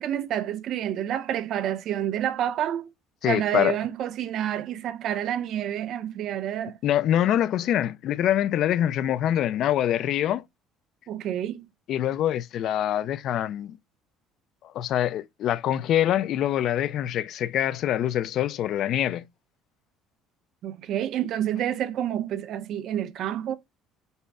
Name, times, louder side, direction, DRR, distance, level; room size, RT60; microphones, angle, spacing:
voice 1, 0.0-2.9 3.2-6.8 11.1-11.7 20.6-23.6, right 10 dB, 50° right, 0.6 m, -28 dB
voice 2, 3.2-3.7 6.8-10.4 11.9-13.8 14.6-19.2, left 11 dB, 50° left, 0.3 m, -25 dB
5.3 x 2.0 x 4.8 m
cardioid pair, 155°, 0 cm